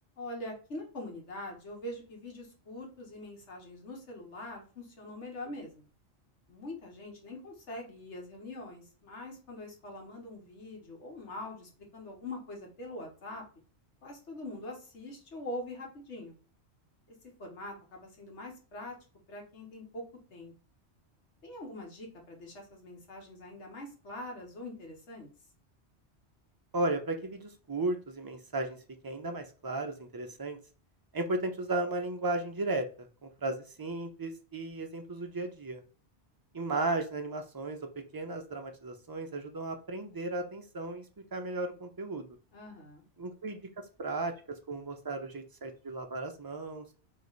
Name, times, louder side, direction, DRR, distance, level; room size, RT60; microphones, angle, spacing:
voice 1, 0.2-5.8 6.5-13.4 14.0-16.4 17.4-18.9 19.3-20.0 20.3-20.5 21.4-25.3 42.5-43.0, left 1 dB, 85° left, 1 dB, 1.5 m, -43 dB
voice 2, 26.7-28.8 29.0-30.6 31.1-32.9 33.2-35.8 36.5-37.8 38.1-41.0 41.3-42.3 43.2-44.3 44.7-46.9, right 2 dB, 30° right, 5 dB, 0.4 m, -35 dB
3.2 x 3.0 x 4.0 m, 0.37 s
omnidirectional pair, 1.2 m